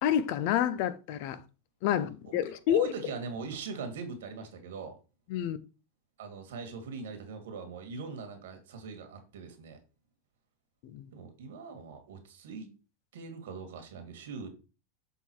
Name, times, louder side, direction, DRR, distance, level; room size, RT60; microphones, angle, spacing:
voice 1, 0.0-1.4 1.8-2.9 5.3-5.6 10.9-11.0, left 10 dB, 55° left, 0.7 m, -28 dB
voice 2, 2.3-5.0 6.2-9.8 11.1-12.7 13.1-14.5, right 4 dB, 85° right, 1.9 m, -41 dB
6.9 x 3.8 x 4.6 m
supercardioid pair, 145°, 0 cm